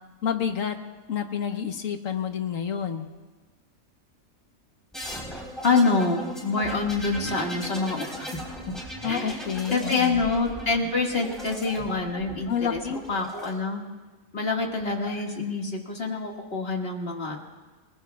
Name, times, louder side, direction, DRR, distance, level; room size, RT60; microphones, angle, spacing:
voice 1, 0.2-0.8 1.1-3.1 9.0-10.2 12.5-13.0, left 8 dB, 70° left, 6 dB, 1.5 m, -29 dB
sound 1, 4.9-13.5 14.6-15.2, equal, ahead, 3.9 m, -38 dB
voice 2, 5.6-8.3 9.0-9.5 9.7-12.8 13.1-13.8 14.3-17.4, left 3 dB, 45° left, 1 dB, 2.1 m, -26 dB
29.0 x 20.0 x 2.4 m, 1.3 s
omnidirectional pair, 1.5 m